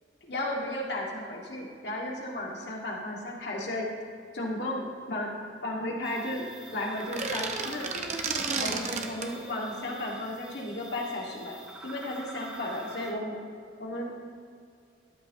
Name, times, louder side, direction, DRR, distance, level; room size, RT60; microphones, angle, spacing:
voice 1, 0.2-3.9 4.3-5.3 5.6-6.4 6.7-7.9 8.6-13.4 13.8-14.2, left 1 dB, 70° left, -2 dB, 2.1 m, -34 dB
sound 1, 6.0-13.1, right 1 dB, 10° right, 2.1 m, -46 dB
sound 2, 7.0-9.3, right 4 dB, 40° right, 0.9 m, -32 dB
13.0 x 12.5 x 3.0 m, 2.3 s
head